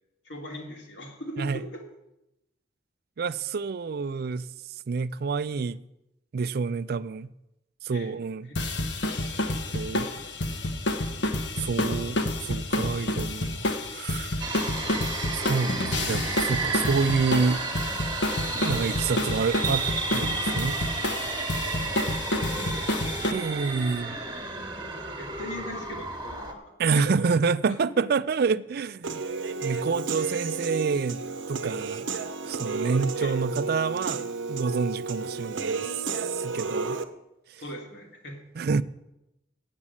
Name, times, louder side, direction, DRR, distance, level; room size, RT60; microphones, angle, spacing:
voice 1, 0.2-1.8 7.9-8.2 8.5-8.6 21.6-23.1 25.2-27.3 27.6-27.8 33.2-33.4 37.6-38.4, left 1 dB, 85° left, 2.8 m, -40 dB
voice 2, 3.2-4.5 4.9-5.8 6.3-7.3 7.8-8.5 9.7-10.1 11.6-14.4 15.3-17.6 18.5-20.8 23.3-24.2 26.8-29.2 29.6-31.2 31.5-32.1 32.4-35.9 36.3-37.0 38.6-38.8, right 5 dB, 55° right, 0.4 m, -28 dB
sound 1, 8.5-23.3, left 1 dB, 70° left, 1.1 m, -29 dB
sound 2, 14.4-26.5, right 4 dB, 25° right, 1.5 m, -32 dB
Human voice / Piano, 29.0-37.0, right 4 dB, 85° right, 0.8 m, -32 dB
8.9 x 7.4 x 8.3 m
head